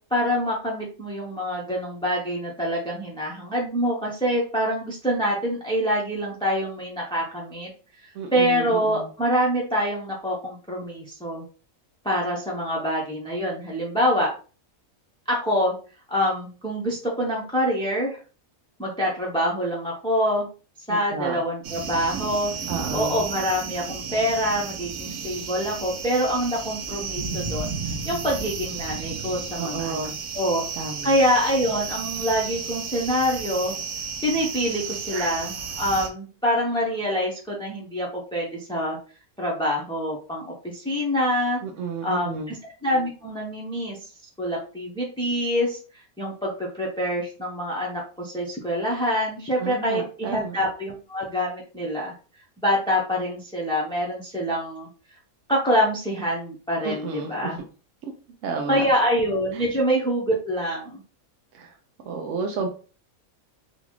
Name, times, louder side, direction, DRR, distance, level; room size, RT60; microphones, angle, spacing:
voice 1, 0.1-7.7 8.3-11.4 12.0-14.3 15.3-15.7 16.1-18.2 18.8-20.5 20.9-22.5 22.9-27.7 28.1-30.1 30.3-30.6 31.0-33.8 34.2-39.0 39.4-41.6 42.0-44.1 44.4-52.1 52.6-54.9 55.5-57.6 58.7-61.0, equal, 5° left, -4 dB, 0.6 m, -25 dB
voice 2, 8.1-9.1 20.9-21.4 22.7-23.3 29.6-30.1 30.7-31.2 41.6-42.5 49.6-50.6 56.8-57.5 58.0-58.1 58.4-58.8 59.5-59.7 61.5-61.7 62.0-62.7, right 4 dB, 70° right, 3 dB, 0.9 m, -31 dB
sound 1, 21.6-36.1, right 5 dB, 85° right, 1.1 m, -33 dB
3.9 x 2.4 x 3.0 m, 0.37 s
omnidirectional pair, 1.5 m